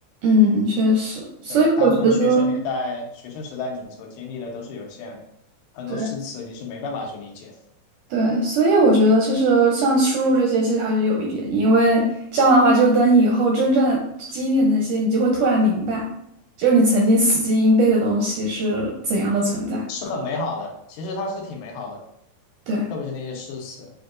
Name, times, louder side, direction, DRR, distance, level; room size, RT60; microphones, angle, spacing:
voice 1, 0.2-2.5 5.9-6.1 8.1-14.0 14.3-16.0 16.6-19.8 22.7-22.8, right 1 dB, 80° right, -1 dB, 1.8 m, -19 dB
voice 2, 1.5-5.2 5.7-7.6 19.9-22.0 22.9-23.9, left 3 dB, 80° left, 1 dB, 2.5 m, -32 dB
6.7 x 2.6 x 2.4 m, 0.76 s
omnidirectional pair, 4.1 m